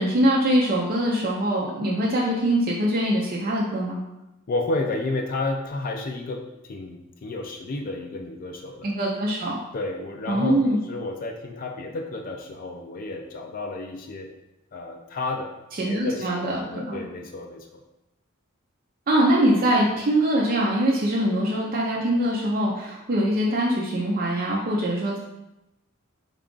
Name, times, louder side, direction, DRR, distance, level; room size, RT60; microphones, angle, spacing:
voice 1, 0.0-4.0 8.8-9.6 10.3-10.8 15.8-17.0 19.1-25.2, right 1 dB, 45° right, -3 dB, 0.4 m, -23 dB
voice 2, 4.5-8.9 9.7-14.3 14.7-15.5 15.8-17.8, left 2 dB, 40° left, 2 dB, 0.3 m, -31 dB
3.4 x 2.4 x 3.7 m, 0.93 s
head